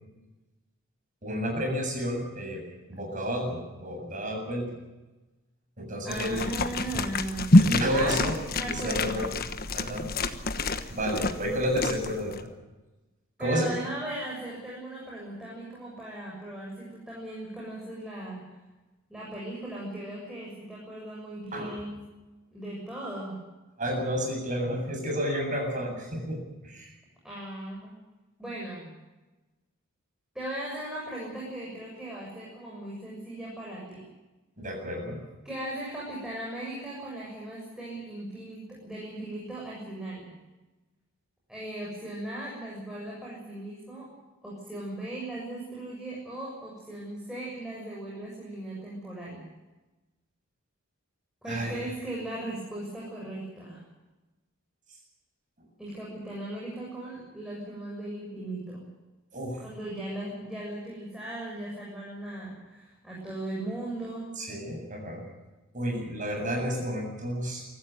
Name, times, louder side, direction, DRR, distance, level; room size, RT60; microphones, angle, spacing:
voice 1, 1.2-2.6 2.9-4.8 5.8-6.5 7.5-8.4 8.6-9.3 9.7-10.1 10.9-12.5 13.4-13.7 21.5-21.7 23.8-26.9 34.6-35.2 51.5-51.8 59.3-59.6 64.4-65.2 65.7-67.7, equal, 35° right, 1 dB, 7.9 m, -31 dB
voice 2, 6.0-7.5 7.9-9.1 13.4-18.4 19.1-22.0 22.5-23.4 27.2-27.9 28.4-28.9 30.3-34.0 35.4-40.3 41.5-44.1 44.4-49.4 51.4-53.8 55.8-58.9 59.6-64.3, right 1 dB, 5° right, -6 dB, 7.2 m, -38 dB
sound 1, 6.1-12.4, left 2 dB, 45° left, 1.2 m, -27 dB
24.0 x 14.5 x 9.5 m, 1.1 s
head